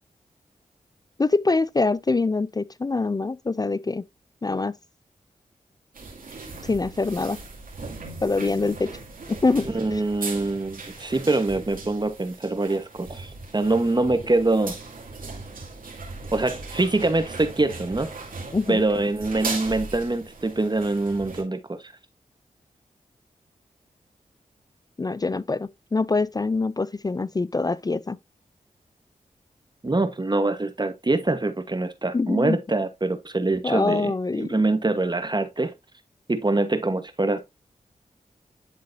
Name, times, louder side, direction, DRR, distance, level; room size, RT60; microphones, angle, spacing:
voice 1, 1.2-4.0 4.4-4.7 6.6-7.4 8.2-8.9 9.3-10.0 18.5-18.8 25.0-28.2 32.1-32.6 33.6-34.5, left 3 dB, 25° left, 0.4 m, -24 dB
sound 1, 5.9-21.4, right 3 dB, 75° right, 2.3 m, -38 dB
voice 2, 9.7-14.8 16.3-18.1 18.7-21.9 29.8-34.1 34.4-35.7 36.3-37.4, right 2 dB, 30° right, 1.2 m, -24 dB
11.0 x 3.8 x 2.7 m
cardioid pair, 45°, 14 cm